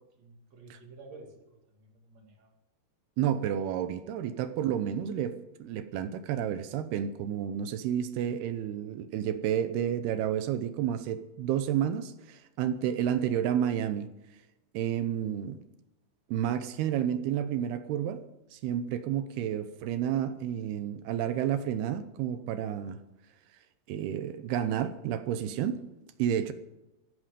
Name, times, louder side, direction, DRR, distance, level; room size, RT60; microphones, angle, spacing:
voice 1, 0.0-2.5, right 3 dB, 45° right, 1 dB, 2.9 m, -52 dB
voice 2, 3.2-14.1 14.7-15.6 16.3-18.2 18.5-23.0 23.9-25.9 26.2-26.5, right 10 dB, 75° right, 11 dB, 2.6 m, -30 dB
14.5 x 12.5 x 5.1 m, 0.95 s
omnidirectional pair, 5.1 m